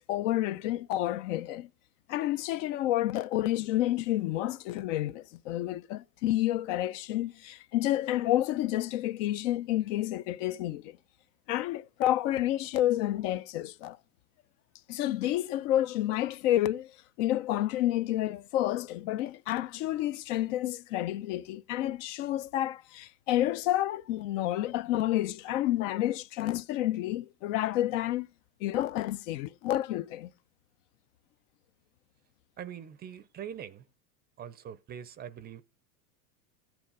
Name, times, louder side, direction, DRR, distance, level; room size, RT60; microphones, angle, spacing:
voice 1, 0.0-1.7 2.1-11.0 11.5-14.0 14.9-16.9 17.2-28.3 28.6-30.3, left 14 dB, 55° left, 0.7 m, -29 dB
voice 2, 32.6-33.8 34.4-35.6, right 9 dB, 20° right, 0.6 m, -43 dB
14.5 x 9.1 x 5.4 m
supercardioid pair, 140°, 45 cm